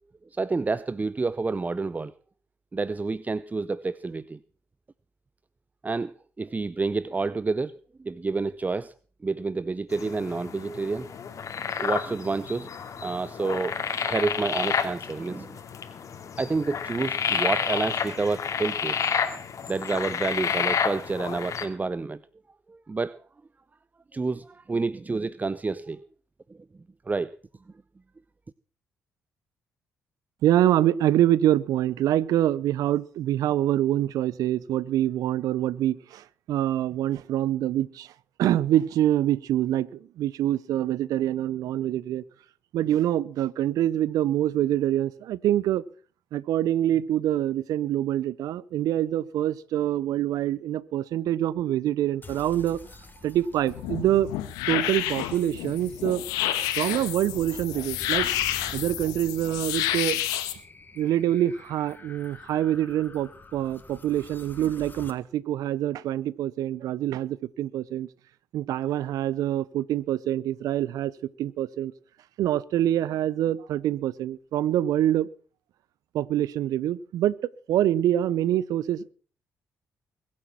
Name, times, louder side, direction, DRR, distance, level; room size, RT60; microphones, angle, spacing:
voice 1, 0.3-2.1 2.7-4.4 5.8-7.7 8.0-8.9 9.2-11.1 11.8-12.7 13.0-15.6 16.4-19.1 19.7-22.2 22.7-23.2 24.1-26.1 26.5-26.6 27.1-27.3, right 3 dB, 25° right, 0.6 m, -29 dB
sound 1, 9.9-21.7, left 7 dB, 55° left, 2.6 m, -30 dB
voice 2, 30.4-38.1 38.4-42.2 42.7-45.8 46.3-52.8 53.2-54.3 54.7-56.2 56.8-58.3 58.7-60.2 61.0-68.1 68.5-71.1 71.4-71.9 72.4-75.3 76.1-77.4 77.7-79.1, right 12 dB, 70° right, 0.7 m, -25 dB
sound 2, 52.2-65.1, left 3 dB, 30° left, 2.7 m, -47 dB
sound 3, 53.7-60.5, left 13 dB, 80° left, 1.8 m, -29 dB
21.5 x 8.6 x 6.0 m
hypercardioid pair, 45°, 6 cm